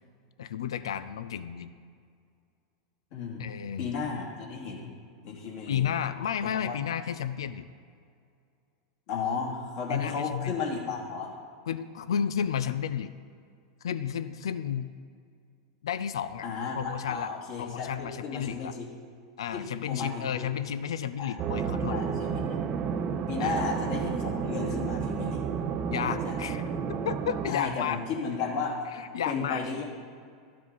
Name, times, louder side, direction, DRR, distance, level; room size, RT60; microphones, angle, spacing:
voice 1, 0.4-1.7 3.4-3.9 5.7-7.7 9.9-10.6 11.7-13.1 13.8-14.9 15.8-16.5 16.7-17.3 17.6-18.7 19.4-22.0 23.4-23.6 25.9-26.6 27.0-28.0 29.0-29.6, left 8 dB, 85° left, 12 dB, 0.4 m, -32 dB
voice 2, 3.1-3.5 3.8-4.9 5.2-5.8 6.6-6.8 9.1-11.3 16.4-18.9 19.5-20.5 21.2-21.4 21.9-22.6 23.3-25.4 26.2-26.4 27.5-28.8 29.2-29.8, left 4 dB, 60° left, -2 dB, 2.5 m, -34 dB
sound 1, 21.4-27.5, right 6 dB, 40° right, 0.7 m, -31 dB
12.5 x 7.4 x 4.1 m, 2.2 s
hypercardioid pair, 115°, 3 cm